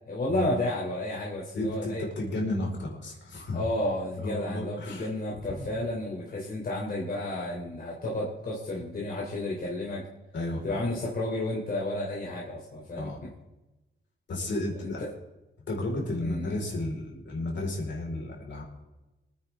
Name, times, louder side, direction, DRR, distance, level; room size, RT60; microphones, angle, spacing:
voice 1, 0.1-2.0 3.5-10.0 10.6-13.3 14.8-15.1 16.2-16.6, left 1 dB, 45° left, -4 dB, 3.2 m, -32 dB
voice 2, 1.5-3.6 4.2-5.1 5.5-5.7 10.3-10.8 12.9-13.2 14.3-15.0 15.7-18.6, left 1 dB, 65° left, -1 dB, 4.5 m, -33 dB
25.5 x 9.8 x 3.6 m, 1.0 s
cardioid pair, 115°, 20 cm